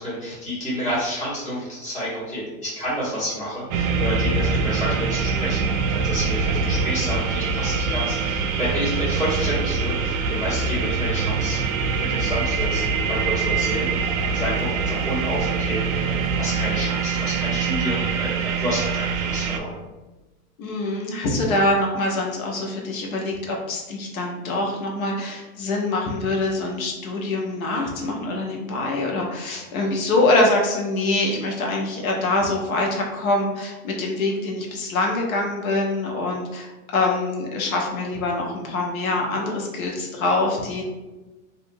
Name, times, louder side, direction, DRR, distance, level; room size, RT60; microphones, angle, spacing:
voice 1, 0.0-11.6 11.9-16.0 16.3-19.7, equal, 15° left, -10 dB, 1.4 m, -29 dB
sound 1, 3.7-19.6, right 5 dB, 65° right, 0.5 m, -24 dB
sound 2, 12.4-17.1, right 1 dB, 15° right, 0.5 m, -40 dB
voice 2, 20.6-40.8, left 2 dB, 65° left, 0 dB, 0.9 m, -24 dB
2.6 x 2.6 x 2.6 m, 1.1 s
hypercardioid pair, 110°, 44 cm